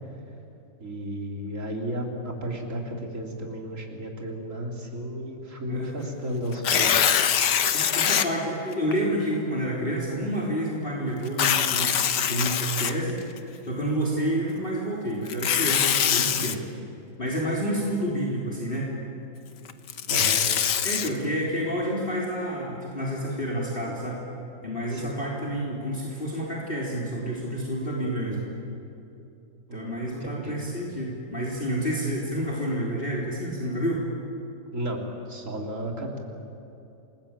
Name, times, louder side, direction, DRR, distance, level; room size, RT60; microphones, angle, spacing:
voice 1, 0.8-7.2 20.1-20.4 24.9-25.2 29.7-30.6 34.7-35.0 35.3-36.2, equal, 40° right, 1 dB, 3.8 m, -33 dB
voice 2, 5.7-6.1 7.7-13.2 13.7-16.6 17.2-18.9 20.8-24.2 24.6-28.4 29.7-34.0, equal, 30° left, -4 dB, 3.7 m, -29 dB
Tearing, 6.5-8.3 8.9-9.0 11.3-13.4 15.3-16.6 19.7-21.1, left 8 dB, 65° left, 1.6 m, -23 dB
28.0 x 20.5 x 8.8 m, 2.8 s
omnidirectional pair, 2.0 m